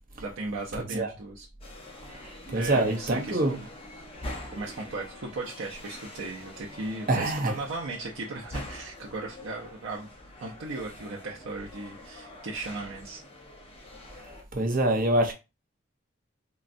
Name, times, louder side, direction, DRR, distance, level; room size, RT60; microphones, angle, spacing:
voice 1, 0.2-1.5 2.6-3.6 4.5-10.1 10.4-13.2, right 3 dB, 85° right, 0.6 m, -36 dB
sound 1, 1.6-14.4, left 1 dB, 30° left, 0.6 m, -45 dB
voice 2, 2.1-3.5 7.1-7.5 14.5-15.3, right 1 dB, 45° right, 0.7 m, -25 dB
3.8 x 2.1 x 2.5 m
head